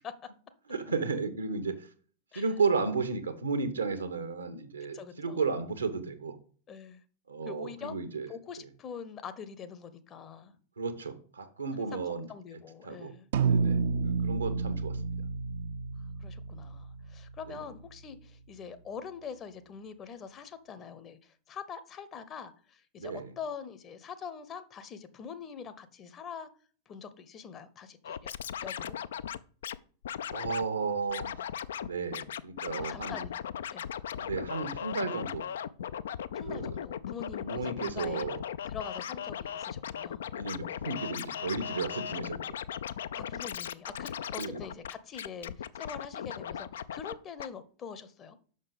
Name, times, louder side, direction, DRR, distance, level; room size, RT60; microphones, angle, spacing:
voice 1, 0.7-1.9 2.3-6.4 7.3-8.3 10.8-12.3 12.8-13.1 13.5-15.0 17.5-17.6 23.0-23.3 30.3-31.4 31.8-33.2 34.2-35.4 36.3-36.8 37.4-38.4 40.3-42.6 44.4-44.6, right 4 dB, 75° right, 10 dB, 1.0 m, -33 dB
voice 2, 4.9-5.4 6.7-7.0 7.5-8.0 8.3-10.5 11.8-13.3 16.2-26.5 26.9-28.3 28.6-28.9 32.8-33.4 33.7-33.9 36.3-38.3 38.7-40.2 43.1-48.4, left 6 dB, 30° left, 13 dB, 0.8 m, -44 dB
sound 1, 13.3-17.9, right 5 dB, 55° right, 0.5 m, -30 dB
Scratching (performance technique), 28.0-29.8 30.0-30.6 31.1-47.1 47.4-47.5, left 9 dB, 60° left, 0.3 m, -38 dB
6.6 x 5.8 x 5.1 m, 0.44 s
figure-of-eight pair, 90°, 0 cm